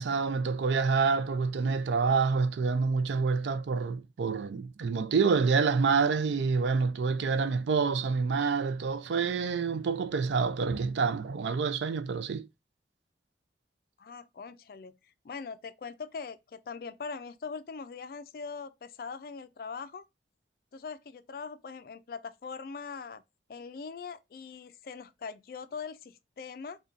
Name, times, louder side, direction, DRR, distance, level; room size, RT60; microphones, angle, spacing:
voice 1, 0.0-12.5, right 5 dB, 85° right, 0.4 m, -27 dB
voice 2, 14.0-14.9 15.2-20.0 20.7-23.2 23.5-26.8, left 5 dB, 55° left, 0.3 m, -41 dB
5.1 x 2.2 x 2.5 m
head